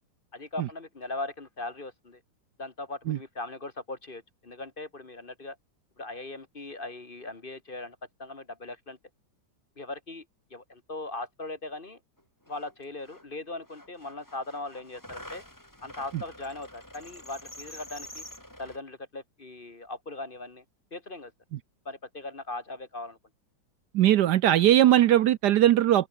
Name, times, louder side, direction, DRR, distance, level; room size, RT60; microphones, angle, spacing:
voice 1, 0.3-2.2 2.6-5.6 6.0-9.0 9.8-10.2 10.5-12.0 12.5-15.4 15.8-18.2 18.6-20.6 20.9-21.3 21.8-23.2, left 2 dB, 30° left, 1.6 m, -39 dB
sound 1, 12.2-12.3 12.5-13.3 13.6-18.8, left 1 dB, 10° left, 4.5 m, -47 dB
voice 2, 23.9-26.1, right 12 dB, 70° right, 1.2 m, -20 dB
open air
omnidirectional pair, 2.1 m